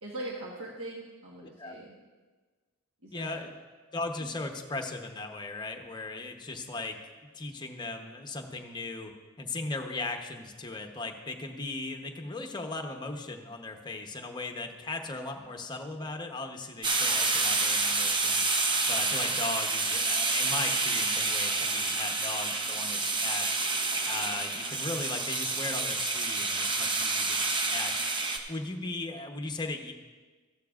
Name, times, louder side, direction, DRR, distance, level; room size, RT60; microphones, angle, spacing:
voice 1, 0.0-2.0 3.0-3.4, right 1 dB, 70° right, -3 dB, 1.3 m, -41 dB
voice 2, 1.4-1.8 3.1-3.6 3.9-7.0 7.3-18.5 18.9-23.5 24.0-27.9 28.5-29.9, left 3 dB, 20° left, 3 dB, 0.8 m, -37 dB
sound 1, 16.8-28.4, right 3 dB, 20° right, 0.7 m, -28 dB
14.5 x 12.0 x 2.4 m, 1.4 s
head